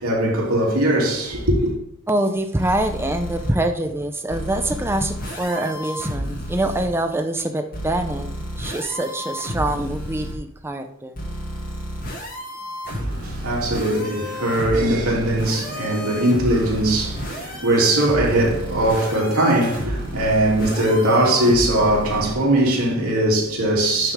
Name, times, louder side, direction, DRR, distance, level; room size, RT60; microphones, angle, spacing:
voice 1, 0.0-1.7 12.9-24.1, right 1 dB, 85° right, 2.9 m, -20 dB
voice 2, 2.1-8.3 8.6-11.2, right 1 dB, 10° right, 0.5 m, -24 dB
sound 1, 2.6-3.5 4.3-6.9 7.7-10.4 11.2-22.3, equal, 40° left, 2.0 m, -31 dB
10.5 x 6.2 x 3.6 m
head